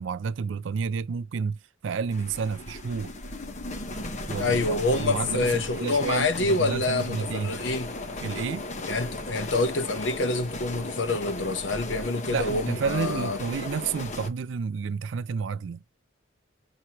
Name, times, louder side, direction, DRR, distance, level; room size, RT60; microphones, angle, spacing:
voice 1, 0.0-3.1 4.3-7.6 8.2-8.7 12.3-15.8, right 5 dB, 75° right, 0.4 m, -30 dB
sound 1, 2.1-14.3, left 2 dB, 40° left, 0.9 m, -36 dB
voice 2, 4.4-7.9 8.9-13.4, left 2 dB, 75° left, 0.9 m, -27 dB
6.0 x 2.8 x 2.9 m
head